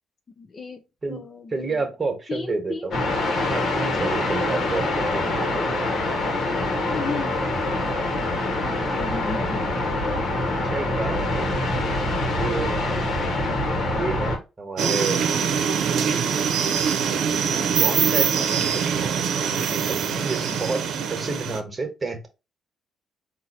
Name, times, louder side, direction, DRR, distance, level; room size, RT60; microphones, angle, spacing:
voice 1, 0.4-0.8 1.1-1.9 2.3-2.9 6.9-7.4 8.3-9.7, left 4 dB, 40° left, 0.6 m, -34 dB
voice 2, 1.5-2.9 3.5-5.9 6.2-6.4 8.7-8.8 10.5-11.6 12.2-12.7 13.8-15.2 17.8-22.3, right 3 dB, 30° right, 1.4 m, -30 dB
sound 1, 2.9-14.4, left 2 dB, 65° left, 1.3 m, -25 dB
sound 2, 14.8-21.6, right 7 dB, 75° right, 0.7 m, -23 dB
4.1 x 2.6 x 4.2 m
cardioid pair, 90°, 0 cm